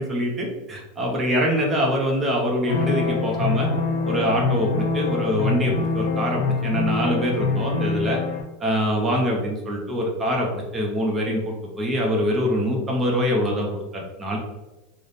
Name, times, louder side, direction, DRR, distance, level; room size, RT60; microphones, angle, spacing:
voice 1, 0.0-3.7 4.1-8.2 8.6-14.4, equal, 10° right, -1 dB, 0.5 m, -24 dB
sound 1, 2.7-8.4, left 4 dB, 85° left, 0.6 m, -25 dB
3.3 x 2.0 x 3.9 m, 1.1 s
supercardioid pair, 180°, 0 cm